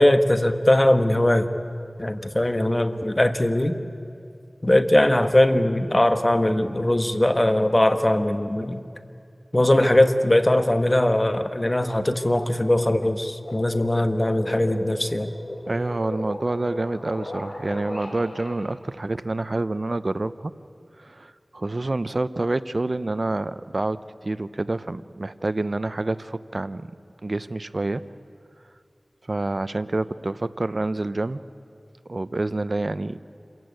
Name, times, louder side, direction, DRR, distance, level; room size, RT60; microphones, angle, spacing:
voice 1, 0.0-1.5 2.0-3.8 4.6-8.8 9.5-15.3, left 1 dB, 30° left, 9 dB, 1.3 m, -20 dB
sound 1, 13.4-18.5, left 1 dB, 65° left, 3.7 m, -36 dB
voice 2, 15.7-20.5 21.0-26.9 27.2-28.0 29.3-31.4 32.1-33.2, right 2 dB, 55° right, 14 dB, 0.6 m, -27 dB
27.0 x 15.5 x 9.4 m, 2.5 s
wide cardioid pair, 45°, 0 cm